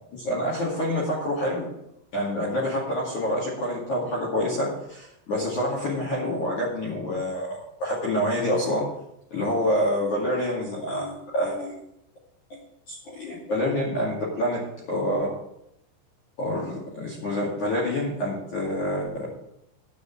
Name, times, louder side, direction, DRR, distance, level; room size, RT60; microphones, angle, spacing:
voice 1, 0.1-1.7 2.1-8.9 9.3-11.8 12.5-12.6 12.9-14.6 14.9-15.3 16.4-19.3, equal, 45° left, -5 dB, 3.1 m, -27 dB
10.0 x 5.5 x 8.3 m, 0.78 s
omnidirectional pair, 5.8 m